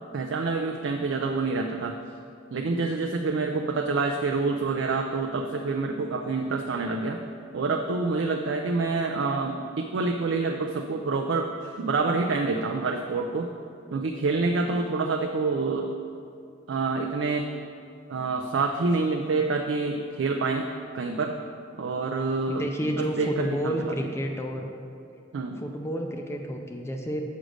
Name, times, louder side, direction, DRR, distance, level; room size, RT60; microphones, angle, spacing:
voice 1, 0.1-2.0 2.5-7.2 7.5-13.5 13.9-15.9 16.7-17.5 18.1-20.7 20.9-21.4 21.8-23.9 25.3-25.6, right 3 dB, 65° right, 3 dB, 0.4 m, -27 dB
voice 2, 22.5-24.7 25.6-27.2, equal, 15° left, 3 dB, 0.4 m, -30 dB
6.5 x 4.9 x 6.4 m, 2.5 s
head